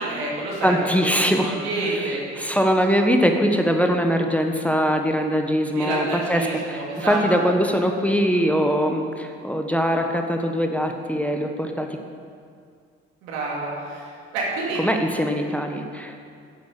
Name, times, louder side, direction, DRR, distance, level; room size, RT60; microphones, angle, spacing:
voice 1, 0.0-0.7 1.4-2.2 5.7-7.2 13.2-14.8, right 3 dB, 85° right, -3 dB, 2.5 m, -28 dB
voice 2, 0.6-1.6 1.9-12.0 14.8-16.2, equal, 5° left, 3 dB, 1.2 m, -22 dB
10.0 x 8.1 x 6.7 m, 2.2 s
hypercardioid pair, 55°, 33 cm